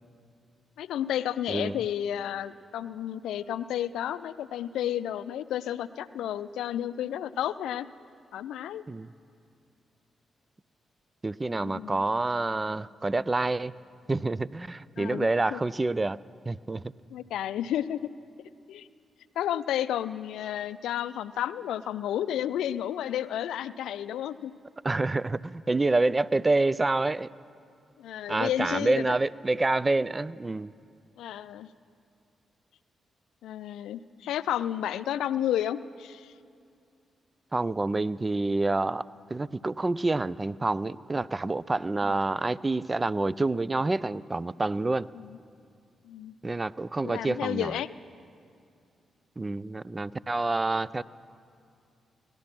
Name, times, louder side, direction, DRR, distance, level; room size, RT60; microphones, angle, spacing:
voice 1, 0.8-7.9 8.3-8.8 11.5-12.0 15.0-15.6 17.1-18.1 18.7-18.9 19.4-24.5 28.0-29.2 31.2-31.7 33.4-36.3 42.0-42.2 45.1-45.4 46.0-46.4 47.0-47.9, left 11 dB, 80° left, 15 dB, 0.3 m, -32 dB
voice 2, 11.2-13.7 14.1-16.2 16.5-16.8 24.8-27.3 28.3-30.7 37.5-39.0 39.3-45.1 46.4-47.8 49.4-51.0, right 2 dB, 30° right, 20 dB, 0.4 m, -27 dB
18.5 x 12.0 x 6.0 m, 2.4 s
supercardioid pair, 45°, 0 cm